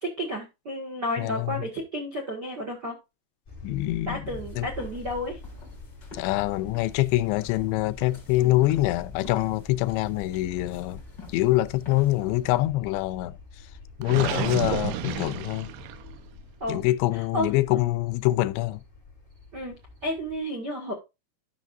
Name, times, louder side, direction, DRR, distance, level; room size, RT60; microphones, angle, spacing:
voice 1, 0.0-3.0 4.0-5.4 8.4-8.6 16.6-16.8 17.1-17.5 19.5-19.8 20.0-20.9, equal, 60° right, 1.0 m, -32 dB
voice 2, 1.2-1.6 3.6-4.3 4.6-4.7 6.1-11.0 11.3-13.4 14.0-15.7 16.7-18.8, left 17 dB, 90° left, 2.9 m, -25 dB
sound 1, 3.5-20.4, left 3 dB, 10° left, 3.8 m, -45 dB
sound 2, 4.3-12.7, left 3 dB, 35° left, 2.2 m, -50 dB
Gurgling, 14.0-16.2, right 10 dB, 80° right, 3.0 m, -31 dB
12.0 x 6.4 x 2.5 m
omnidirectional pair, 5.1 m